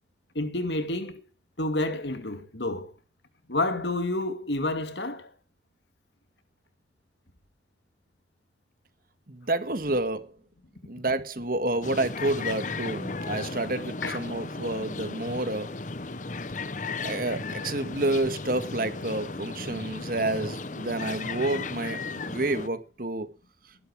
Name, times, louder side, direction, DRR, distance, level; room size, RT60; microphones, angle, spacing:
voice 1, 0.3-1.2 1.6-2.9 3.5-5.3 14.0-14.2, left 2 dB, 75° left, 2.4 m, -29 dB
voice 2, 9.3-10.3 10.8-15.7 17.0-23.3, right 2 dB, 50° right, 1.9 m, -29 dB
sound 1, 11.8-22.7, left 3 dB, 45° left, 0.9 m, -35 dB
18.5 x 11.5 x 4.8 m
head